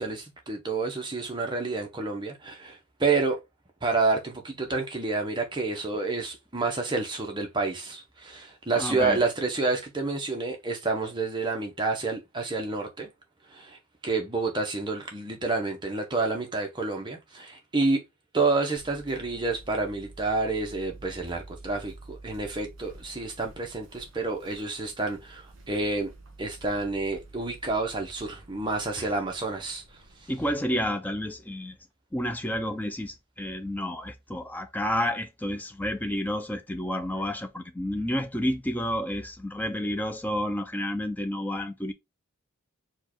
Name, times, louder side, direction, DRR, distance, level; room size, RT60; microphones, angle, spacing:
voice 1, 0.0-3.4 3.8-13.1 13.5-13.8 14.0-18.0 18.3-26.1 26.4-29.8, right 3 dB, 20° right, 0.9 m, -29 dB
voice 2, 8.8-9.2 29.0-29.1 30.3-31.8 32.1-41.9, left 1 dB, 10° left, 0.5 m, -30 dB
sound 1, 18.8-30.3, right 2 dB, 60° right, 1.8 m, -49 dB
4.5 x 2.4 x 4.3 m
head